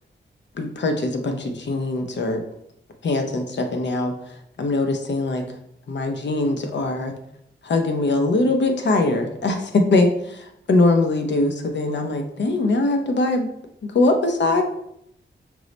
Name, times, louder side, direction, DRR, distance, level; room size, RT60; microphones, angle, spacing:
voice 1, 0.6-2.4 3.0-4.1 4.6-5.6 5.9-7.1 7.6-13.5 13.8-14.6, left 2 dB, 65° left, 5 dB, 0.6 m, -22 dB
4.6 x 2.1 x 3.9 m, 0.75 s
wide cardioid pair, 75°, 19 cm